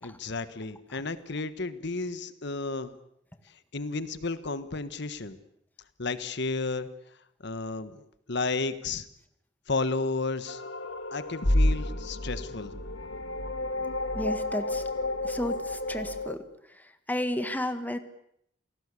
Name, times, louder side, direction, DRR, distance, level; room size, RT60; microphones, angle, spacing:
voice 1, 0.0-2.9 3.7-5.4 6.0-6.9 7.4-8.0 8.3-9.1 9.7-10.6 11.1-12.7, left 3 dB, 65° left, 12 dB, 1.4 m, -32 dB
sound 1, 10.5-16.3, left 1 dB, 85° left, 2.2 m, -30 dB
voice 2, 14.1-14.8 15.2-16.4 16.7-18.0, left 1 dB, 10° left, 9 dB, 1.7 m, -33 dB
28.5 x 19.0 x 8.4 m, 0.74 s
head